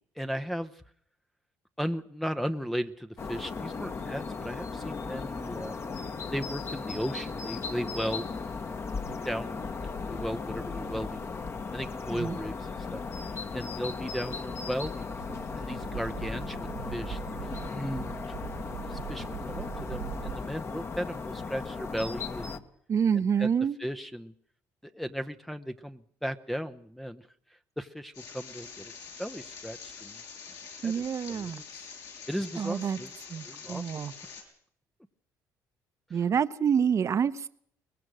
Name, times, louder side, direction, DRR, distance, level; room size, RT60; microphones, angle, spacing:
voice 1, 0.2-0.8 1.8-5.8 6.3-8.3 8.7-8.8 9.2-9.7 10.0-11.3 11.7-13.0 13.5-15.2 15.5-17.4 17.7-18.2 18.8-22.6 23.4-23.5 23.8-24.3 24.8-27.2 27.8-28.9 29.2-30.2 30.8-31.0 31.3-31.9 32.3-33.1 33.5-34.0 36.1-36.2, equal, 5° left, 8 dB, 0.9 m, -36 dB
sound 1, 3.2-22.6, left 4 dB, 40° left, 1.8 m, -37 dB
sound 2, 15.2-20.4, right 10 dB, 85° right, 2.5 m, -41 dB
voice 2, 22.9-23.8 30.8-31.6 32.6-33.0 33.3-34.1 36.1-37.5, right 7 dB, 45° right, 14 dB, 1.0 m, -27 dB
sound 3, 28.1-34.4, left 6 dB, 70° left, 7.5 m, -45 dB
22.5 x 20.0 x 6.3 m, 0.63 s
supercardioid pair, 85°, 7 cm